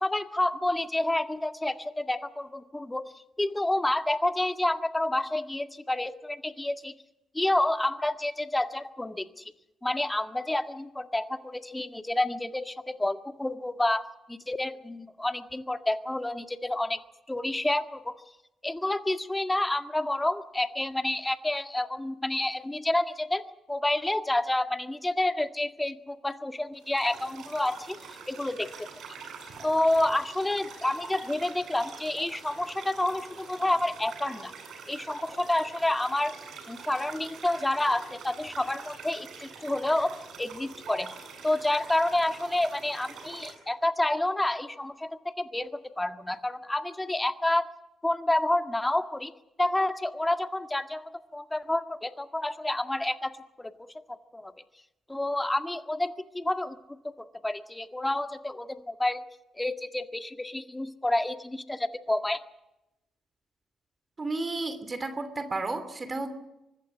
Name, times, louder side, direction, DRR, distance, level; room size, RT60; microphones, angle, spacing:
voice 1, 0.0-3.1 3.4-6.9 7.3-9.4 9.8-17.0 17.3-18.1 18.6-28.7 29.6-34.5 34.9-36.3 36.7-41.1 41.4-47.7 48.0-49.3 49.6-54.5 55.1-59.2 59.6-62.4, left 1 dB, 15° left, 9 dB, 1.8 m, -29 dB
sound 1, 26.8-43.5, right 5 dB, 60° right, 8.0 m, -45 dB
voice 2, 64.2-66.3, right 3 dB, 35° right, 10 dB, 2.9 m, -32 dB
24.5 x 20.5 x 6.3 m, 0.95 s
hypercardioid pair, 45°, 0 cm